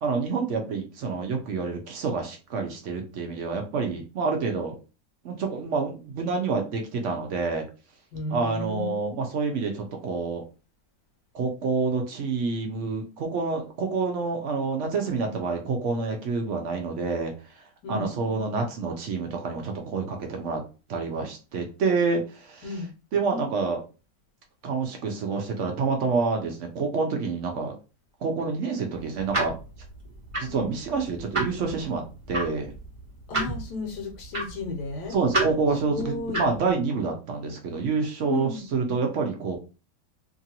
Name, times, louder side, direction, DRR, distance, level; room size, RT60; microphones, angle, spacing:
voice 1, 0.0-4.8 5.2-7.6 8.3-10.4 11.3-17.3 17.9-20.6 20.9-23.8 24.6-27.8 28.2-29.5 30.4-32.0 32.3-32.7 35.1-39.6, right 4 dB, 70° right, 3 dB, 0.7 m, -28 dB
voice 2, 8.1-9.0 17.8-18.1 22.6-22.9 30.5-30.7 33.3-35.1 35.8-36.4 38.3-38.7, left 3 dB, 70° left, 2 dB, 1.2 m, -33 dB
sound 1, 28.9-36.7, right 2 dB, 30° right, 0.6 m, -32 dB
2.9 x 2.5 x 2.8 m, 0.32 s
omnidirectional pair, 1.9 m